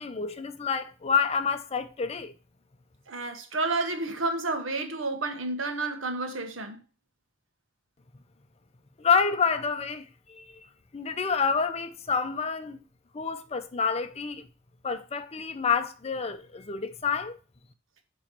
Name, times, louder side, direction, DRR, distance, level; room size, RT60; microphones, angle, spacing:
voice 1, 0.0-2.3 9.0-10.6 10.9-12.8 13.1-14.5 14.8-17.4, left 5 dB, 30° left, 0.6 m, -28 dB
voice 2, 3.1-6.8, right 2 dB, 85° right, 1.1 m, -30 dB
8.1 x 3.1 x 4.4 m
head